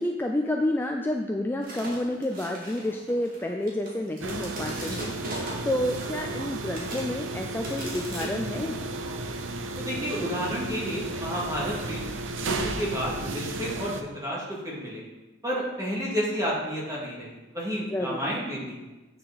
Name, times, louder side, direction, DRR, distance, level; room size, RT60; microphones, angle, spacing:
voice 1, 0.0-8.8 17.9-18.3, left 1 dB, 10° left, 2 dB, 0.4 m, -29 dB
sound 1, 1.6-6.4 6.8-7.2 7.6-8.7, right 1 dB, 50° right, 2.2 m, -39 dB
sound 2, 4.2-14.0, right 2 dB, 85° right, 0.7 m, -34 dB
voice 2, 9.8-12.1 12.3-15.0 15.4-18.8, equal, 20° right, -5 dB, 2.2 m, -31 dB
8.5 x 6.6 x 4.0 m, 1.1 s
head